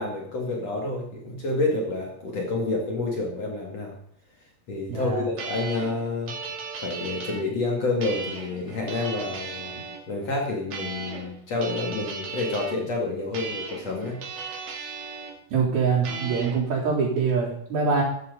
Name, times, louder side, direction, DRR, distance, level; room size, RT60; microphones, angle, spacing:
voice 1, 0.0-3.9 4.7-6.3 6.8-9.7 10.1-14.2, left 2 dB, 45° left, -1 dB, 3.2 m, -29 dB
voice 2, 4.9-5.2 15.5-18.0, right 5 dB, 85° right, -9 dB, 5.7 m, -24 dB
sound 1, 5.4-7.4 8.0-10.0 10.7-11.3 11.6-12.8 13.3-15.3 16.0-16.6, right 4 dB, 50° right, 3.3 m, -36 dB
15.0 x 13.5 x 4.1 m, 0.68 s
omnidirectional pair, 4.2 m